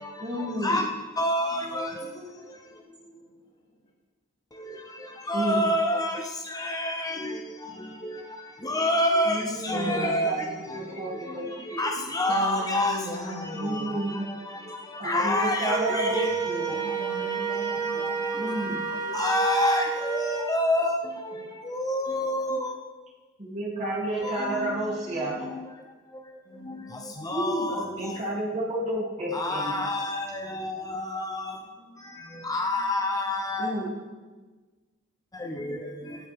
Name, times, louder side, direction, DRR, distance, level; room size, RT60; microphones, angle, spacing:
voice 1, 0.2-0.9 5.3-5.6 9.3-11.9 13.5-14.3 15.0-16.8 18.3-18.8 23.4-25.6 27.3-29.8 33.6-33.9, right 1 dB, 35° right, -5 dB, 3.0 m, -31 dB
voice 2, 1.2-1.9 5.3-6.1 6.6-7.1 8.7-9.4 9.7-10.3 11.8-13.0 15.1-16.2 19.1-21.0 21.7-22.6 24.4-24.5 27.3-27.8 29.3-30.2 31.1-31.4 32.5-33.7, left 1 dB, 15° left, 2 dB, 0.8 m, -26 dB
voice 3, 2.0-3.6 4.8-5.2 8.5-8.6 9.7-10.3 12.3-14.0 14.3-14.6 16.7-19.3 26.4-27.3 31.6-32.8 33.1-33.2 33.6-34.4, equal, 35° left, -8 dB, 2.7 m, -40 dB
Wind instrument woodwind instrument, 15.7-20.5, right 6 dB, 15° right, 1.7 m, -30 dB
14.0 x 13.0 x 3.6 m, 1.3 s
head